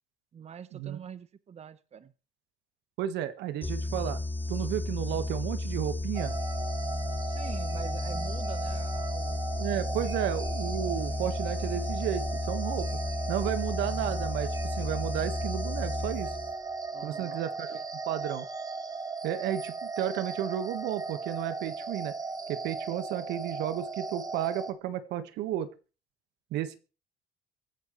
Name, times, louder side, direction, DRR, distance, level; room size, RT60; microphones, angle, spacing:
voice 1, 0.3-2.1 7.2-10.1 13.5-13.6 16.9-17.5, right 7 dB, 40° right, 14 dB, 1.1 m, -46 dB
voice 2, 3.0-4.2 4.5-6.3 9.6-12.9 13.3-16.3 17.0-17.8 18.1-18.4 19.2-22.1 22.5-25.7 26.5-26.8, right 11 dB, 85° right, 11 dB, 1.6 m, -33 dB
sound 1, 3.6-16.7, left 2 dB, 10° left, 1.1 m, -33 dB
sound 2, 6.1-24.7, right 4 dB, 20° right, 1.8 m, -37 dB
24.0 x 9.1 x 3.2 m, 0.34 s
cardioid pair, 110°, 17 cm